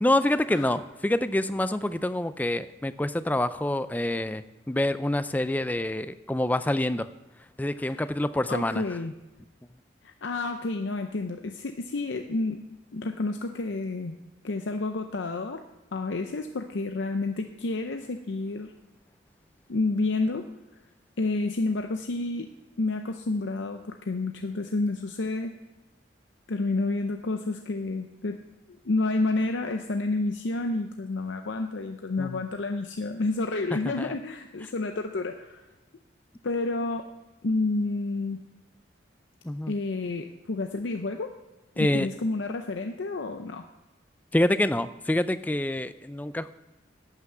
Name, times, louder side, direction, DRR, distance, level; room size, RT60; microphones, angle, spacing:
voice 1, 0.0-7.1 7.6-8.8 32.2-32.4 33.8-34.2 39.4-39.7 41.8-42.1 44.3-46.5, left 1 dB, 10° left, 13 dB, 0.3 m, -26 dB
voice 2, 7.8-8.1 8.5-9.1 10.0-12.6 12.9-14.2 14.4-15.6 15.9-18.7 19.7-20.5 21.2-22.5 22.8-25.5 26.5-28.4 28.8-35.6 36.4-37.1 37.4-38.4 39.7-41.3 41.8-43.6, left 3 dB, 75° left, 6 dB, 0.6 m, -30 dB
11.5 x 5.9 x 7.8 m, 1.1 s
head